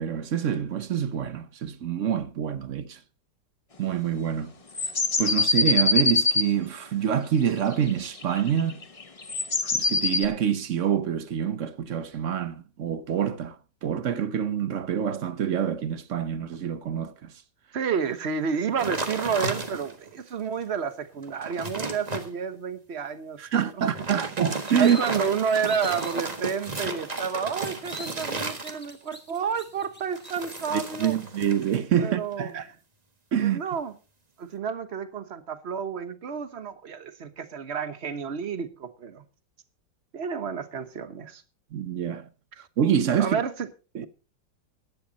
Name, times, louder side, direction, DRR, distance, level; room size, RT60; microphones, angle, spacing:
voice 1, 0.0-3.0 3.8-4.5 4.8-4.9 5.2-8.8 9.6-17.3 23.4-25.0 30.7-32.7 33.3-33.6 41.7-42.3 42.6-43.4 43.9-44.1, right 8 dB, 55° right, 0.9 m, -26 dB
sound 1, 4.7-6.5 7.9-10.2, left 3 dB, 30° left, 0.7 m, -23 dB
voice 2, 17.7-23.4 24.8-31.1 32.0-32.5 33.4-33.9 34.4-39.2 40.1-41.4 43.2-43.7, right 6 dB, 40° right, 1.2 m, -30 dB
sound 2, 18.8-20.1 20.6-20.7 21.1-22.3 23.8-29.1 30.1-31.8 32.1-32.5, right 3 dB, 25° right, 1.4 m, -33 dB
sound 3, 24.4-26.2 26.7-26.8 27.1-30.7, left 1 dB, 5° left, 2.1 m, -44 dB
14.5 x 10.5 x 4.1 m
omnidirectional pair, 2.0 m